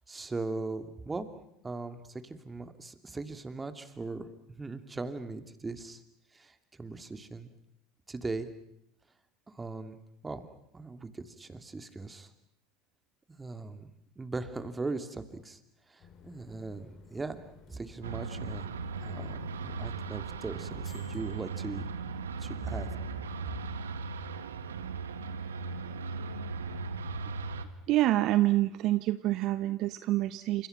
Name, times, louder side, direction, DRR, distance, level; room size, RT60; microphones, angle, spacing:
voice 1, 0.1-1.3 1.6-6.0 6.3-7.5 8.1-8.5 9.5-10.0 10.2-10.5 10.7-12.3 13.3-15.6 15.9-17.4 17.7-21.8 22.4-22.9, right 3 dB, 15° right, 9 dB, 2.7 m, -39 dB
sound 1, 16.0-22.4, left 6 dB, 45° left, 5.5 m, -54 dB
sound 2, 18.0-27.6, right 4 dB, 80° right, 1.6 m, -38 dB
voice 2, 27.9-30.7, right 15 dB, 50° right, 13 dB, 0.9 m, -27 dB
29.0 x 27.0 x 6.0 m, 0.77 s
figure-of-eight pair, 75°, 0 cm